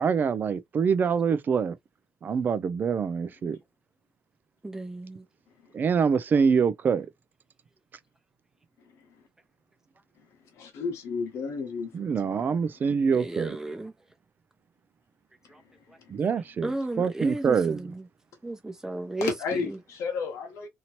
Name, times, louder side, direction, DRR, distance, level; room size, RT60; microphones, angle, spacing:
voice 1, 0.0-1.8 2.2-3.6 5.7-7.1 11.9-13.6 16.1-17.9, right 6 dB, 40° right, 0.4 m, -25 dB
voice 2, 4.6-5.2 13.1-13.9 15.5-15.6 16.6-18.0 18.4-19.3, right 2 dB, 10° right, 0.8 m, -33 dB
voice 3, 8.8-9.2 10.2-10.3 10.5-12.6 15.4-16.1 19.2-20.7, left 5 dB, 85° left, 1.0 m, -34 dB
2.9 x 2.8 x 2.9 m
cardioid pair, 130°, 5 cm